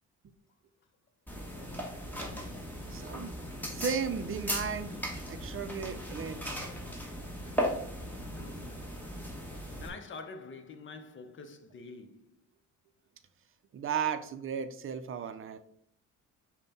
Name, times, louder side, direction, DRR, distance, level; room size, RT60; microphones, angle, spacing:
sound 1, 1.3-9.9, equal, 5° left, 1.1 m, -37 dB
voice 1, 2.9-3.3 3.7-5.0 5.3-6.7 13.7-15.6, right 7 dB, 45° right, 0.5 m, -35 dB
voice 2, 8.3-8.8 9.8-12.3, left 4 dB, 40° left, 0.7 m, -47 dB
5.5 x 2.2 x 4.0 m
cardioid pair, 90°, 30 cm